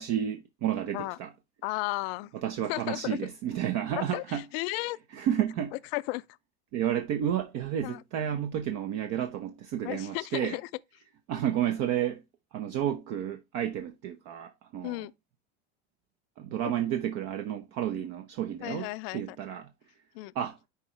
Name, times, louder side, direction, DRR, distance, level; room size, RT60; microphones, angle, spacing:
voice 1, 0.0-1.3 2.4-4.4 5.1-5.7 6.7-10.6 11.3-12.2 12.5-15.1 16.4-19.7 20.3-20.6, right 10 dB, 60° right, 0.9 m, -31 dB
voice 2, 1.6-2.3 2.7-3.2 4.0-5.0 5.9-6.2 7.8-8.0 9.8-10.7 14.8-15.1 18.6-19.4 20.1-20.3, left 22 dB, 75° left, 0.5 m, -34 dB
10.5 x 4.6 x 3.2 m
supercardioid pair, 120°, 30 cm